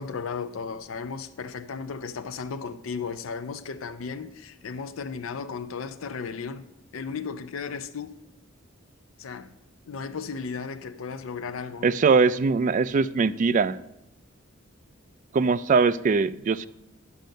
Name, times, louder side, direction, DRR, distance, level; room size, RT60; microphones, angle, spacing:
voice 1, 0.0-6.7 6.9-8.2 9.2-9.5 9.9-11.9, left 5 dB, 90° left, 0.5 m, -35 dB
voice 2, 11.8-13.8 15.3-16.7, right 4 dB, 40° right, 0.3 m, -21 dB
10.5 x 5.2 x 6.6 m
head